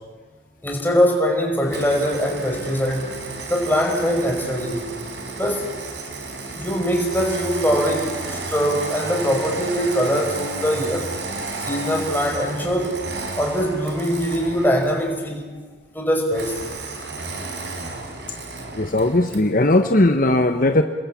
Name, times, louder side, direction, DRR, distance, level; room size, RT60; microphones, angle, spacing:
voice 1, 0.6-3.1 3.5-4.9 5.4-5.7 6.5-11.1 11.6-13.0 13.3-15.4 15.9-16.6, equal, 10° left, 0 dB, 5.5 m, -22 dB
Engine starting, 1.6-15.1 16.3-19.5, right 3 dB, 80° right, 4.8 m, -32 dB
voice 2, 18.7-20.8, left 1 dB, 50° left, 6 dB, 1.2 m, -18 dB
29.5 x 21.0 x 8.6 m, 1.4 s
head